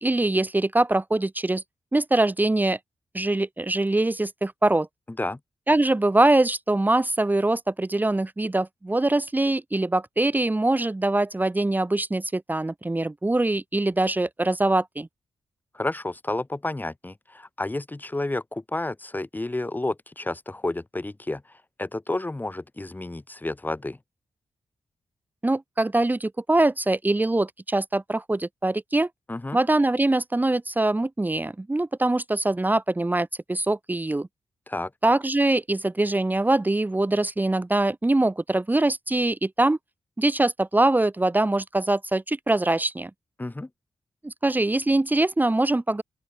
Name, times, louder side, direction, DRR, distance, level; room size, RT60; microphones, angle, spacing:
voice 1, 0.0-1.6 1.9-2.8 3.1-4.9 5.7-15.1 25.4-29.1 29.5-34.3 35.0-39.8 40.2-43.1 44.2-46.0, right 2 dB, 15° right, 1.9 m, -23 dB
voice 2, 15.7-21.4 21.8-24.0 29.3-29.6 34.7-34.9 43.4-43.7, left 2 dB, 20° left, 3.0 m, -30 dB
open air
cardioid pair, 95°, 10 cm